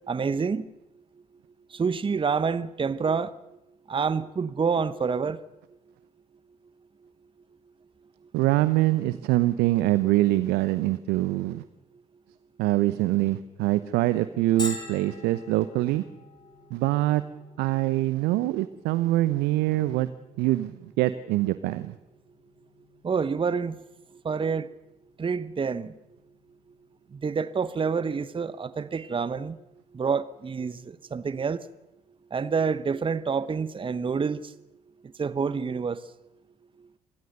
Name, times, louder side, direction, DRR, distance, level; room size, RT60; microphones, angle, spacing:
voice 1, 0.1-0.7 1.7-3.3 3.9-5.4 23.0-23.8 24.2-24.7 25.2-25.9 27.1-29.6 29.9-31.6 32.3-34.5 35.2-36.0, right 5 dB, 30° right, 1.0 m, -27 dB
voice 2, 8.3-11.6 12.6-16.0 16.7-17.2 17.6-20.1 20.4-22.0, right 16 dB, 70° right, 0.8 m, -24 dB
Bell, 14.6-30.0, left 3 dB, 25° left, 5.3 m, -47 dB
26.5 x 18.5 x 6.7 m
hypercardioid pair, 50°, 18 cm